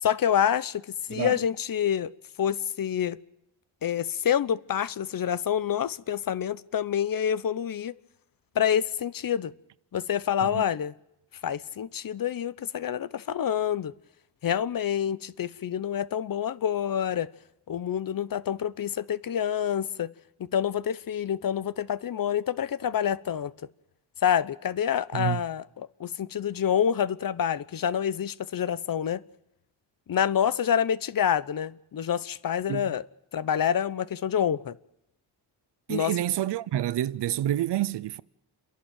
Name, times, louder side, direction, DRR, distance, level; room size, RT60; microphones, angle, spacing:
voice 1, 0.0-0.8 1.1-2.1 2.4-3.2 3.8-7.9 8.5-9.5 9.9-10.9 11.4-13.9 14.4-17.3 17.7-20.1 20.5-23.5 24.2-29.2 30.1-33.0 33.3-34.8 35.9-36.1, left 9 dB, 50° left, 0.9 m, -27 dB
voice 2, 35.9-38.2, right 13 dB, 70° right, 0.8 m, -28 dB
28.5 x 11.5 x 9.1 m
cardioid pair, 90°, 43 cm